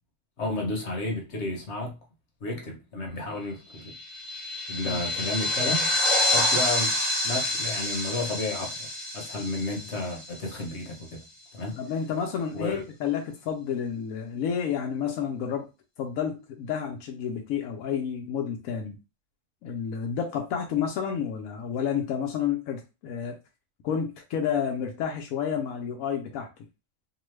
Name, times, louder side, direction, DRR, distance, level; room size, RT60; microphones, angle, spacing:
voice 1, 0.4-2.0 2.4-3.9 4.7-5.9 6.3-7.0 7.2-8.9 9.1-11.2 11.5-11.8 12.5-12.8, left 2 dB, 55° left, 1.0 m, -32 dB
sound 1, 3.9-10.7, left 1 dB, 25° right, 0.7 m, -28 dB
voice 2, 11.8-15.7 16.0-18.9 19.6-23.4 23.8-26.5, left 7 dB, 85° left, 1.0 m, -30 dB
2.9 x 2.2 x 3.1 m
omnidirectional pair, 1.4 m